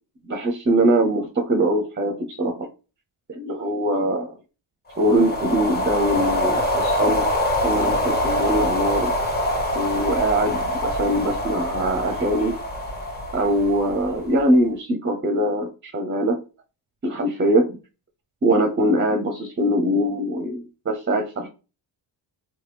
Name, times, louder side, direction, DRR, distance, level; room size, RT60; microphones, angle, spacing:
voice 1, 0.3-2.7 3.3-4.3 5.0-7.3 7.6-9.1 9.7-12.6 13.3-16.4 17.0-17.7 18.4-21.5, right 1 dB, 25° right, 4 dB, 0.6 m, -22 dB
sound 1, 4.9-14.4, left 1 dB, 20° left, 1.1 m, -24 dB
3.0 x 2.2 x 3.3 m, 0.32 s
cardioid pair, 75°, 45 cm